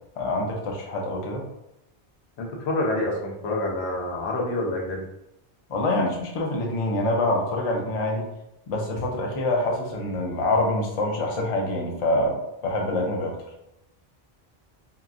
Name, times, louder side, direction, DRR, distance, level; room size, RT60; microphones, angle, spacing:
voice 1, 0.2-1.4 5.7-8.2 8.7-12.4 12.6-13.3, left 1 dB, 45° left, 0 dB, 0.5 m, -25 dB
voice 2, 2.4-5.0, left 1 dB, 85° left, -1 dB, 0.9 m, -27 dB
2.9 x 2.4 x 2.4 m, 0.86 s
omnidirectional pair, 1.1 m